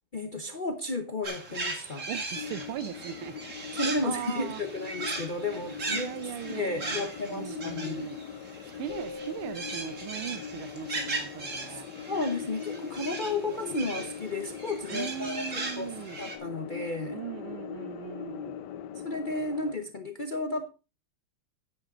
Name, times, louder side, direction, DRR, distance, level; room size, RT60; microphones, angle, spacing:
voice 1, 0.1-2.1 3.7-6.1 6.5-8.1 11.7-15.9 16.2-17.2 19.0-20.7, left 2 dB, 55° left, 0.5 m, -33 dB
sound 1, 1.2-16.4, right 3 dB, 35° right, 2.2 m, -38 dB
voice 2, 2.1-4.6 5.9-8.2 8.8-11.9 14.9-16.2 17.1-18.7, right 11 dB, 85° right, 1.6 m, -39 dB
sound 2, 2.3-19.8, left 8 dB, 70° left, 1.0 m, -41 dB
sound 3, 8.9-11.5, left 3 dB, 85° left, 2.4 m, -45 dB
9.8 x 9.4 x 3.7 m
omnidirectional pair, 2.3 m